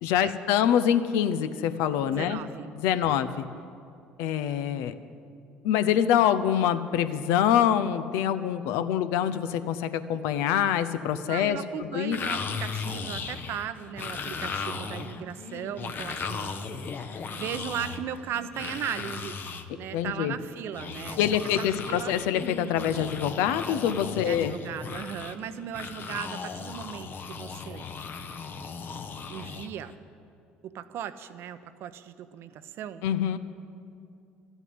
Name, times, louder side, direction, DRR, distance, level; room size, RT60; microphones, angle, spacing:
voice 1, 0.0-2.4 2.7-3.5 4.2-4.9 5.6-12.2 19.9-20.3 21.2-24.5 33.0-33.4, left 10 dB, 75° left, 12 dB, 0.6 m, -25 dB
voice 2, 2.1-2.7 11.3-16.5 17.3-19.4 19.7-21.2 21.6-22.2 24.2-27.8 29.3-29.9 30.6-33.0, right 9 dB, 60° right, 12 dB, 0.7 m, -37 dB
sound 1, 12.1-19.6 20.7-29.9, left 5 dB, 45° left, 1.0 m, -36 dB
12.5 x 8.1 x 9.5 m, 2.5 s
hypercardioid pair, 65°, 5 cm